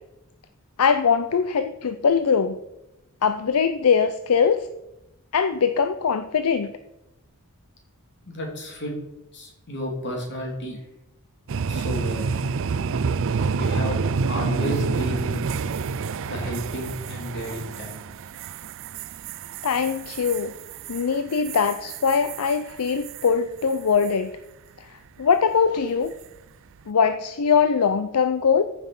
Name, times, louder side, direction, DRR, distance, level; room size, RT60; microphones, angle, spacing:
voice 1, 0.8-2.6 3.2-4.6 5.3-6.7 19.6-20.5 20.9-24.3 24.8-26.1 26.9-28.6, left 6 dB, 75° left, 11 dB, 0.5 m, -22 dB
voice 2, 8.3-8.9 9.3-10.8 11.7-12.4 13.6-14.0 14.3-15.5 16.3-17.9, equal, 50° left, 1 dB, 3.0 m, -32 dB
sound 1, 11.5-23.3 23.7-24.1 26.0-26.4, right 5 dB, 60° right, 0.5 m, -29 dB
14.5 x 6.0 x 5.4 m, 0.93 s
head